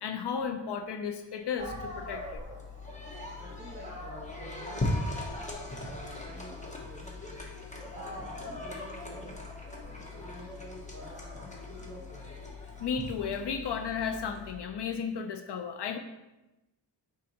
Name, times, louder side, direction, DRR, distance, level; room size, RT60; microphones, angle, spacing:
voice 1, 0.0-2.4 12.8-16.0, left 6 dB, 70° left, 6 dB, 0.5 m, -34 dB
Dog, 1.3-1.4 1.6-7.6 7.9-14.7, equal, 15° right, 0.8 m, -47 dB
sound 1, 1.6-14.5, left 2 dB, 15° left, 0.7 m, -39 dB
voice 2, 3.4-5.3 5.8-7.4 7.9-9.4 10.0-12.3, right 1 dB, 35° right, -3 dB, 1.5 m, -49 dB
5.2 x 3.7 x 2.8 m, 1.0 s
wide cardioid pair, 120°, 43 cm